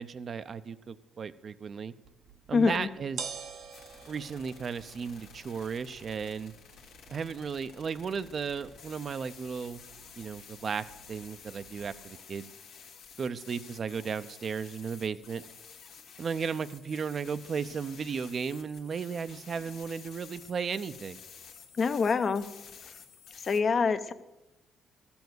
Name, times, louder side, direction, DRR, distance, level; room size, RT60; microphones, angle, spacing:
voice 1, 0.0-1.9 2.5-3.2 4.1-6.5 7.1-9.8 10.2-12.5 13.2-15.4 16.2-21.2, right 6 dB, 50° right, 14 dB, 0.6 m, -35 dB
sound 1, 2.0-12.1, right 6 dB, 75° right, 1.0 m, -49 dB
voice 2, 2.5-2.9 21.8-22.5 23.4-24.1, left 5 dB, 45° left, 12 dB, 0.8 m, -25 dB
sound 2, 3.7-23.6, left 6 dB, 80° left, 1.5 m, -52 dB
14.0 x 7.1 x 7.9 m, 0.99 s
cardioid pair, 90°, 0 cm